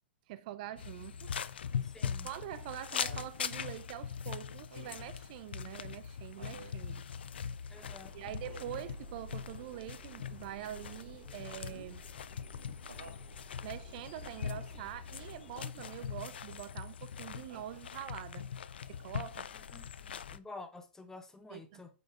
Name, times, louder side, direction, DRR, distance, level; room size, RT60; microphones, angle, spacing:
voice 1, 0.3-1.6 2.0-7.0 8.1-12.0 12.7-12.8 13.6-18.5 18.9-19.5 21.5-21.8, right 13 dB, 45° right, 0.4 m, -45 dB
sound 1, 0.8-20.4, left 7 dB, 70° left, 0.4 m, -41 dB
voice 2, 1.8-2.3 7.7-8.3 19.5-21.9, left 3 dB, 10° left, 0.7 m, -50 dB
Laughter, 2.0-3.3 4.7-5.2 6.4-6.8 8.4-8.9 11.5-12.0 12.9-13.3 15.6-16.1 17.5-18.1 19.5-19.6, right 4 dB, 80° right, 1.5 m, -52 dB
sound 2, 7.7-15.6, right 1 dB, 20° right, 3.1 m, -53 dB
8.1 x 5.5 x 2.4 m
figure-of-eight pair, 110°, 6 cm